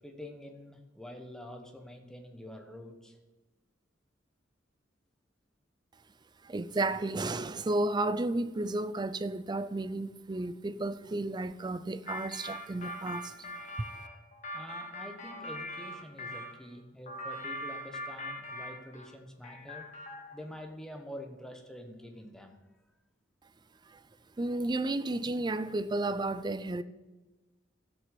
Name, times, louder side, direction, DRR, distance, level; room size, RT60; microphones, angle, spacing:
voice 1, 0.0-3.2 14.5-19.9 20.3-22.6, left 1 dB, 5° left, 1.1 m, -46 dB
voice 2, 6.4-13.5 23.9-24.0 24.4-26.8, right 2 dB, 25° right, 0.4 m, -32 dB
sound 1, 12.1-16.5 17.1-19.1 19.4-20.4, left 1 dB, 40° left, 1.4 m, -41 dB
13.0 x 6.2 x 6.8 m
head